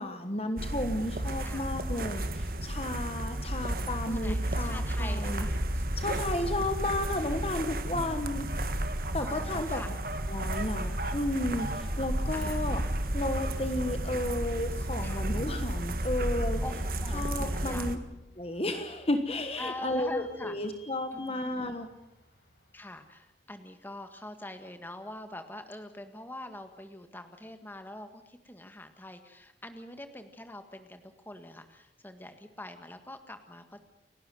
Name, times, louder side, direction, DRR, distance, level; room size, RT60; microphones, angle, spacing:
voice 1, 0.0-5.5 6.0-8.5 9.1-9.8 10.3-12.8 13.1-16.6 17.1-18.0 18.4-21.9, left 1 dB, 30° left, 8 dB, 1.3 m, -33 dB
sound 1, 0.6-18.0, right 1 dB, 50° right, 1.6 m, -32 dB
voice 2, 4.1-5.6 7.9-8.5 9.2-9.9 12.3-12.7 15.0-15.3 16.6-18.0 19.6-20.5 21.1-21.8 22.7-33.8, left 1 dB, 10° left, 7 dB, 1.7 m, -44 dB
Vehicle / Squeak, 17.9-23.2, left 1 dB, 55° left, 4.8 m, -58 dB
29.5 x 12.0 x 9.2 m, 0.90 s
head